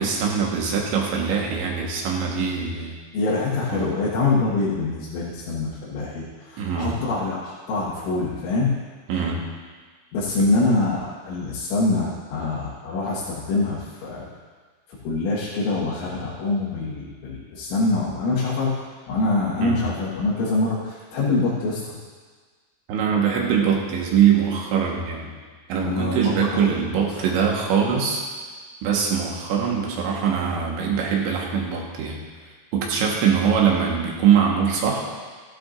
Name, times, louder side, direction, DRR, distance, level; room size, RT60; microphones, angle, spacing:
voice 1, 0.0-3.0 3.7-4.0 6.6-6.9 9.1-9.4 10.4-10.5 19.6-19.9 22.9-25.3 25.7-28.2 28.8-32.2 32.7-35.0, right 7 dB, 80° right, -1 dB, 3.7 m, -22 dB
voice 2, 3.1-8.7 10.1-14.3 15.0-18.7 19.1-22.0 25.8-26.8, left 3 dB, 90° left, -9 dB, 4.2 m, -25 dB
16.0 x 12.5 x 2.6 m, 1.5 s
omnidirectional pair, 5.4 m